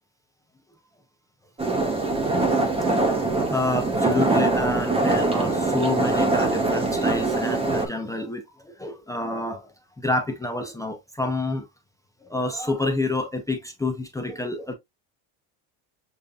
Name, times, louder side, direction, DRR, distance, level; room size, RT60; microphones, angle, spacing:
sound 1, 1.6-7.9, right 2 dB, 10° right, 0.8 m, -23 dB
voice 1, 2.6-3.1 3.5-9.7 10.0-11.7 12.2-14.7, left 2 dB, 10° left, 0.4 m, -28 dB
6.8 x 2.6 x 2.3 m
cardioid pair, 145°, 49 cm